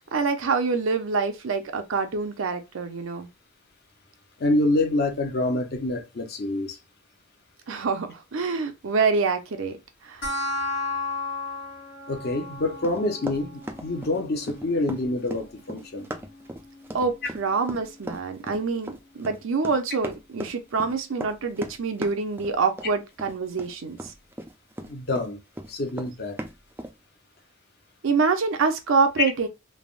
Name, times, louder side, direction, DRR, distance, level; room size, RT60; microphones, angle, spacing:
voice 1, 0.1-3.3 7.7-9.8 10.0-10.2 16.9-24.1 28.0-29.5, right 4 dB, 75° right, 0.5 m, -26 dB
voice 2, 4.4-6.8 12.1-16.1 24.8-25.4 25.7-26.4, left 2 dB, 50° left, 0.6 m, -26 dB
sound 1, 10.2-21.2, left 2 dB, 70° left, 1.1 m, -37 dB
Run, 12.8-25.3 25.5-26.9, right 1 dB, 10° right, 0.3 m, -37 dB
3.3 x 2.0 x 2.4 m
head